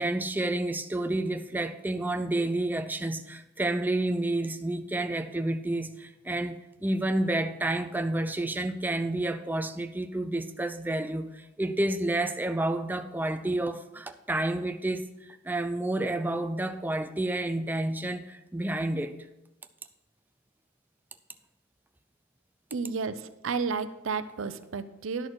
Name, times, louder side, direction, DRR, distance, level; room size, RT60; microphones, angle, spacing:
voice 1, 0.0-15.1 15.4-19.2, right 1 dB, 10° right, 0.4 m, -30 dB
voice 2, 22.7-25.3, right 5 dB, 85° right, 0.6 m, -32 dB
11.0 x 6.4 x 4.6 m
head